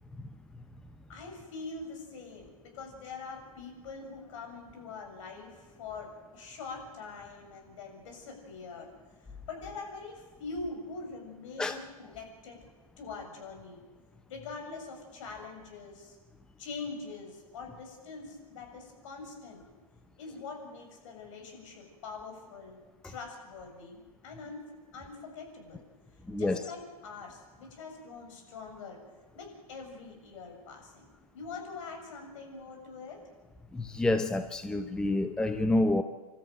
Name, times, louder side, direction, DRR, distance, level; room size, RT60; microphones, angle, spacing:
voice 1, 1.1-8.9 9.5-12.7 13.0-13.8 14.3-16.2 16.6-19.7 20.2-22.8 23.0-25.8 26.4-29.0 29.3-33.2, left 4 dB, 50° left, 3 dB, 7.2 m, -43 dB
voice 2, 26.3-26.6 33.7-36.0, left 2 dB, 5° left, 8 dB, 0.7 m, -28 dB
26.5 x 13.5 x 9.2 m, 1.3 s
hypercardioid pair, 125°, 20 cm